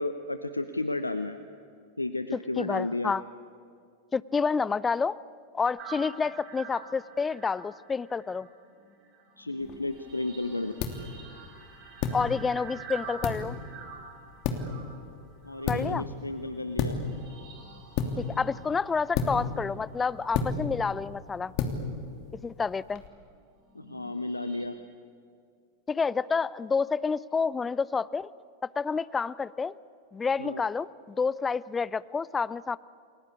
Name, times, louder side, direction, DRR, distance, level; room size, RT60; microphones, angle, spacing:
voice 1, 0.0-1.4 2.0-3.1 9.4-10.7 15.4-17.0 23.7-24.7 30.4-30.6, left 2 dB, 85° left, 10 dB, 0.9 m, -32 dB
voice 2, 2.6-3.2 4.1-5.2 5.5-8.5 12.1-13.6 15.7-16.0 18.2-21.5 22.4-23.0 25.9-28.3 28.8-29.7 30.1-32.8, left 5 dB, 15° left, 19 dB, 0.6 m, -29 dB
sound 1, 5.8-22.3 22.9-24.7, right 5 dB, 40° right, 4.4 m, -48 dB
sound 2, 9.6-23.1, left 5 dB, 40° left, 3.0 m, -34 dB
30.0 x 21.5 x 8.5 m, 2.3 s
figure-of-eight pair, 90°, 0 cm